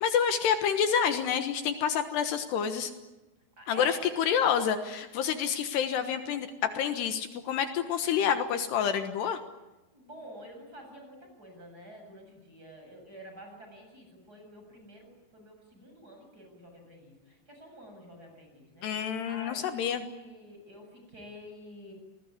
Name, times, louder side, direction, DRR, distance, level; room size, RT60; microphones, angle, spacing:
voice 1, 0.0-2.9 3.7-6.5 6.8-9.4 18.8-20.1, left 8 dB, 75° left, 8 dB, 3.3 m, -28 dB
voice 2, 3.6-4.0 9.9-18.9 19.3-21.9, equal, 20° right, 3 dB, 8.1 m, -49 dB
29.5 x 20.5 x 9.7 m, 1.1 s
omnidirectional pair, 5.1 m